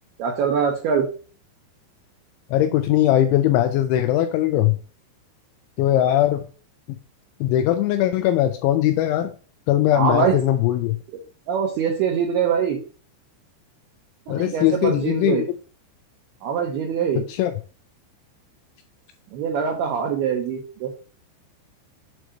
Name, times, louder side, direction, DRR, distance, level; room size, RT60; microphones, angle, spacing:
voice 1, 0.2-1.1 9.9-10.4 11.5-12.8 14.3-15.4 16.4-17.2 19.3-20.9, right 7 dB, 75° right, 0 dB, 2.4 m, -23 dB
voice 2, 2.5-4.8 5.8-6.4 7.4-9.3 9.7-11.0 14.3-15.4 17.4-17.5, left 12 dB, 85° left, 7 dB, 2.7 m, -20 dB
7.8 x 3.0 x 4.9 m, 0.37 s
omnidirectional pair, 5.8 m